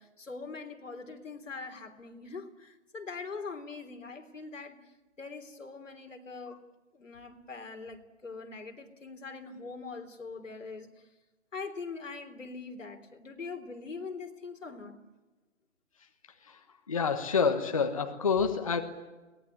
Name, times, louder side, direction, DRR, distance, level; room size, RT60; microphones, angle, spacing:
voice 1, 0.0-4.9 5.2-6.6 6.9-10.9 11.5-15.0, left 4 dB, 85° left, 5 dB, 3.5 m, -42 dB
voice 2, 16.9-18.8, left 5 dB, 25° left, 6 dB, 1.2 m, -28 dB
23.0 x 19.0 x 9.8 m, 1.1 s
hypercardioid pair, 175°, 37 cm